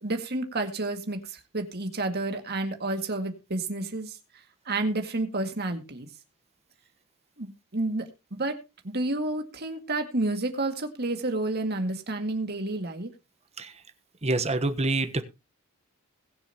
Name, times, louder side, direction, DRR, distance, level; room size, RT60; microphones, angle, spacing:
voice 1, 0.0-4.2 4.7-6.1 7.4-8.6 8.8-13.1, right 2 dB, 45° right, 2.1 m, -30 dB
voice 2, 14.2-15.2, right 2 dB, 30° right, 1.2 m, -26 dB
21.5 x 7.2 x 3.0 m
head